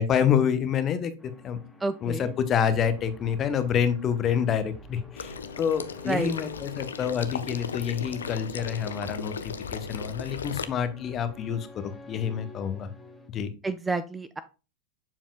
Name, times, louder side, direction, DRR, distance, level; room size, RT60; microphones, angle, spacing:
voice 1, 0.0-1.6 2.0-12.9 13.3-13.5, left 8 dB, 30° left, 12 dB, 0.9 m, -27 dB
sound 1, 1.2-13.3, left 2 dB, 5° left, 1.3 m, -49 dB
voice 2, 1.8-2.3 6.1-6.3 13.6-14.4, right 3 dB, 10° right, 13 dB, 0.4 m, -29 dB
Water / Liquid, 5.2-10.6, left 6 dB, 70° left, 0.5 m, -36 dB
7.3 x 7.1 x 2.3 m, 0.31 s
figure-of-eight pair, 90°, 0 cm